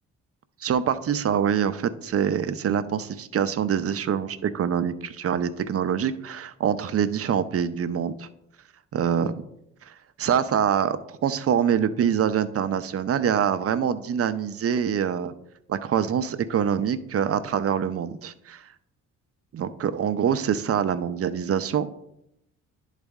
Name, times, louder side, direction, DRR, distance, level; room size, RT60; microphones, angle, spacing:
voice 1, 0.6-8.3 8.9-9.4 9.9-15.3 15.7-18.6 19.5-21.9, right 8 dB, 50° right, 12 dB, 0.5 m, -25 dB
10.0 x 4.1 x 3.6 m, 0.80 s
cardioid pair, 70°, 31 cm